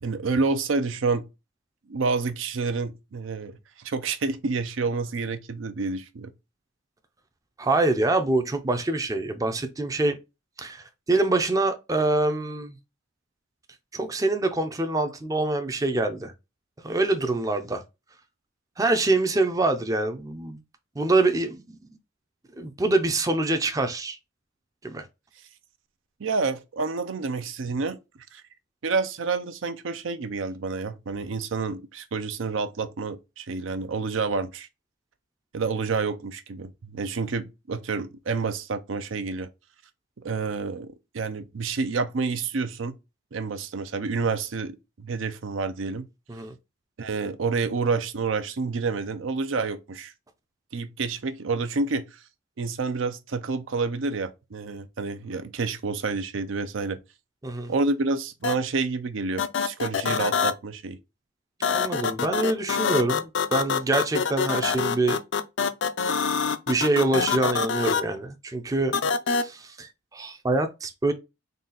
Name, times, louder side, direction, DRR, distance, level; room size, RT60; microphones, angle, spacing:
voice 1, 0.0-1.2 1.9-3.6 3.8-6.3 26.2-28.0 28.3-28.4 28.8-34.7 35.5-39.5 40.2-42.9 43.3-46.0 47.0-50.1 50.7-52.0 52.6-57.0 57.7-61.0, right 4 dB, 80° right, 0.6 m, -28 dB
voice 2, 7.6-10.2 10.6-12.8 13.9-16.3 16.8-17.8 18.8-20.6 21.0-21.8 22.6-24.2 24.8-25.1 46.3-46.5 57.4-57.7 61.7-65.2 66.7-68.9 69.3-71.1, right 2 dB, 15° right, 0.4 m, -25 dB
sound 1, 58.4-58.5 59.4-60.5 61.6-68.0 68.9-69.4, left 6 dB, 65° left, 0.4 m, -25 dB
3.9 x 2.4 x 3.9 m
head